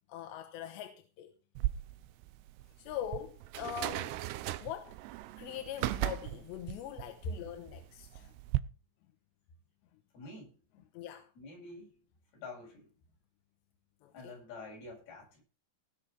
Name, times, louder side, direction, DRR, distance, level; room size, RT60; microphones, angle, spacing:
voice 1, 0.1-1.3 2.8-4.2 4.6-5.0 5.4-8.3 10.2-10.3 10.9-11.3 14.0-14.3, left 10 dB, 90° left, 3.4 m, -42 dB
sound 1, 1.6-8.6, right 16 dB, 80° right, 2.8 m, -37 dB
voice 2, 10.1-10.6 11.4-11.9 12.3-12.9 14.1-15.4, left 3 dB, 60° left, 9.4 m, -48 dB
18.5 x 6.6 x 5.8 m
omnidirectional pair, 4.9 m